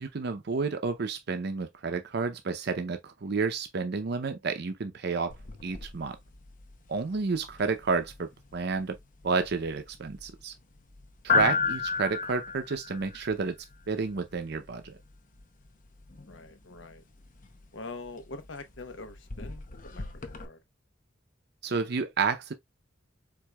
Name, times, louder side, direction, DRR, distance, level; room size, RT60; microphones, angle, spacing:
voice 1, 0.0-5.3 5.6-6.2 6.9-9.0 9.2-10.5 11.2-13.6 13.9-15.0 21.6-22.5, right 4 dB, 60° right, 0.6 m, -30 dB
sound 1, 5.3-20.5, left 5 dB, 45° left, 0.7 m, -36 dB
voice 2, 16.3-17.0 17.7-20.6, left 3 dB, 85° left, 1.0 m, -44 dB
4.6 x 3.7 x 2.2 m
head